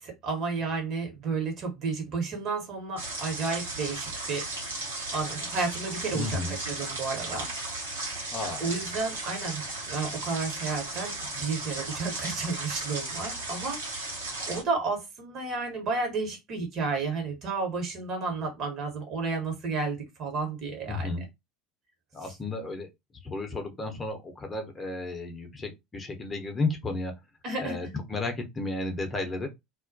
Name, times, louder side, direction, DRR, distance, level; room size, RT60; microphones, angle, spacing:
voice 1, 0.0-4.5 5.1-7.5 7.8-8.2 8.6-9.6 9.9-14.1 14.5-21.1 22.2-22.3 27.4-27.9, right 4 dB, 45° right, 1.0 m, -32 dB
sound 1, 3.0-14.6, right 2 dB, 75° right, 0.9 m, -35 dB
voice 2, 6.1-6.6 8.3-8.6 20.9-21.2 22.1-22.9 23.2-27.1 27.6-29.5, left 2 dB, 25° left, 0.7 m, -33 dB
2.3 x 2.1 x 2.5 m
figure-of-eight pair, 70°, 0 cm